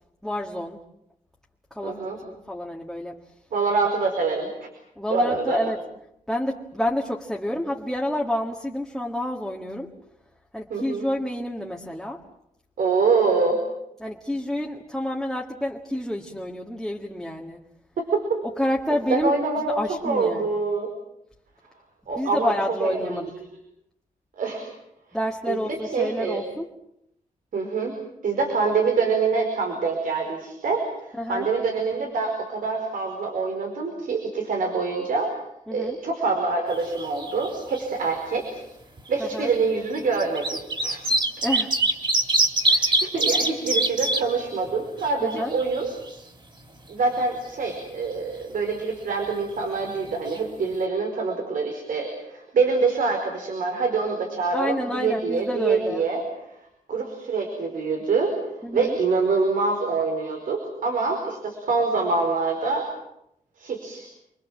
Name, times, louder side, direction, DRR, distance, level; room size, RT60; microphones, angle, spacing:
voice 1, 0.2-0.8 1.7-3.2 5.0-5.8 6.3-9.9 10.5-12.2 14.0-17.6 18.6-19.4 19.7-20.5 22.1-23.3 25.1-26.7 31.2-31.5 35.7-36.0 39.2-39.5 41.4-41.7 45.2-45.5 54.5-56.0 58.6-59.0, left 1 dB, ahead, -1 dB, 1.9 m, -29 dB
voice 2, 1.8-2.2 3.5-4.7 5.1-5.6 10.7-11.0 12.8-13.6 18.0-18.1 19.1-20.9 22.1-22.5 22.8-23.3 24.4-24.7 25.5-25.6 25.9-26.4 27.5-27.9 28.2-35.3 35.7-38.7 39.1-41.1 42.7-45.9 46.9-56.2 56.9-58.3 58.7-62.9 63.6-64.1, right 4 dB, 85° right, 3 dB, 4.8 m, -25 dB
sound 1, 36.7-37.5 37.7-37.8 39.0-39.1 40.0-44.2 44.7-44.8 45.0-46.1 50.0-50.1 50.3-50.4, right 2 dB, 35° right, 3.7 m, -23 dB
29.5 x 23.0 x 7.6 m, 0.78 s
wide cardioid pair, 140°, 14 cm